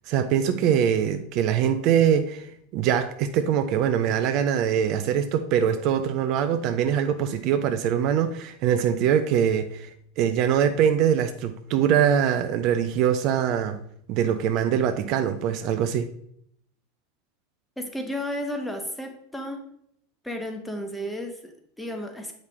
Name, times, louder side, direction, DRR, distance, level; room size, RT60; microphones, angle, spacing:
voice 1, 0.1-9.9 10.2-13.8 14.1-16.1, right 9 dB, 45° right, 9 dB, 0.4 m, -23 dB
voice 2, 17.8-19.6 20.2-22.3, equal, 5° left, 4 dB, 1.1 m, -33 dB
8.1 x 5.1 x 3.1 m, 0.69 s
figure-of-eight pair, 80°, 0 cm